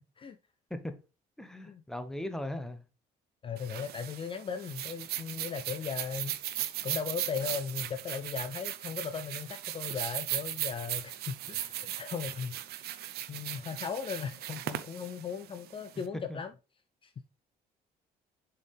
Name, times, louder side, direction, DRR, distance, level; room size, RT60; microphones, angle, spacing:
voice 1, 1.4-2.8 16.3-16.4, left 1 dB, 5° left, 0.9 m, -38 dB
voice 2, 3.4-6.4 6.8-16.5 17.0-17.1, left 6 dB, 30° left, 0.5 m, -38 dB
sound 1, 3.6-16.0, right 13 dB, 70° right, 0.7 m, -38 dB
6.9 x 4.5 x 3.4 m
cardioid pair, 110°, 17 cm